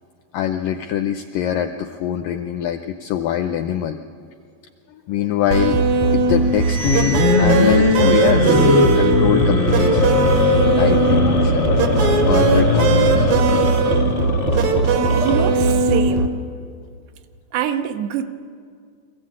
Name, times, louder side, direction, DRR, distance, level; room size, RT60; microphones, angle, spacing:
voice 1, 0.3-4.0 5.1-5.8 6.1-10.2 10.8-11.7 12.3-13.4, left 10 dB, 85° left, 8 dB, 1.9 m, -24 dB
sound 1, 5.5-16.3, right 4 dB, 70° right, 1.7 m, -18 dB
sound 2, 6.2-11.9, right 5 dB, 55° right, 1.0 m, -35 dB
sound 3, 6.9-15.7, left 4 dB, 55° left, 0.7 m, -19 dB
voice 2, 15.2-16.3 17.5-18.2, right 9 dB, 90° right, 7 dB, 3.0 m, -24 dB
23.5 x 15.0 x 8.6 m, 2.2 s
omnidirectional pair, 4.6 m